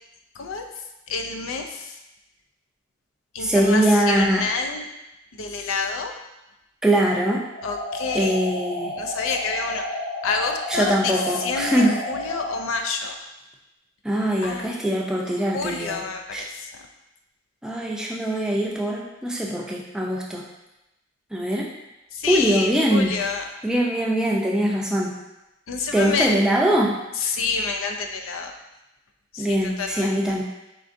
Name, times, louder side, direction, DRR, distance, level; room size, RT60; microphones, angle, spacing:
voice 1, 1.1-2.0 3.3-4.9 5.3-6.1 7.6-8.4 9.0-9.8 10.2-13.2 14.4-14.7 15.5-16.7 22.1-23.5 25.7-26.3 27.2-28.5 29.3-30.4, left 4 dB, 85° left, 4 dB, 0.5 m, -28 dB
voice 2, 3.4-4.4 6.8-7.4 8.1-9.0 10.7-11.9 14.0-16.0 16.3-16.5 17.6-20.4 21.3-21.7 22.3-23.1 23.6-25.1 25.9-26.9 29.4-30.4, right 1 dB, 5° right, -3 dB, 0.4 m, -22 dB
sound 1, 7.5-12.6, left 1 dB, 45° left, 1.3 m, -31 dB
4.4 x 3.7 x 2.5 m, 0.94 s
head